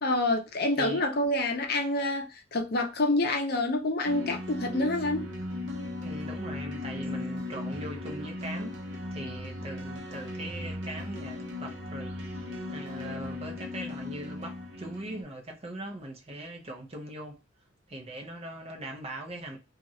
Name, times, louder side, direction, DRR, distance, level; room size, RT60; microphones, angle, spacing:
voice 1, 0.0-5.3, left 2 dB, 50° left, 0.6 m, -27 dB
voice 2, 0.8-1.1 6.0-8.8 9.1-17.4 17.9-19.6, right 1 dB, 30° right, 0.6 m, -40 dB
sound 1, 4.0-15.2, left 2 dB, 65° right, 0.7 m, -37 dB
2.9 x 2.4 x 2.7 m
head